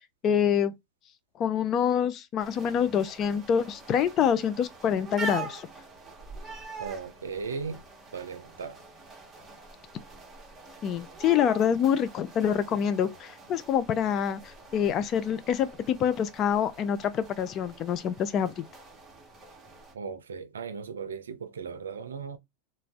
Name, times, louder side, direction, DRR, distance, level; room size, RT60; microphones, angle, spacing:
voice 1, 0.2-0.7 1.4-5.7 10.8-18.6, left 8 dB, 40° left, 0.4 m, -26 dB
sound 1, 2.4-19.9, right 4 dB, 20° right, 1.1 m, -44 dB
voice 2, 6.8-7.8 8.1-8.8 19.9-22.4, right 5 dB, 90° right, 0.4 m, -37 dB
2.4 x 2.2 x 3.4 m
hypercardioid pair, 95°, 0 cm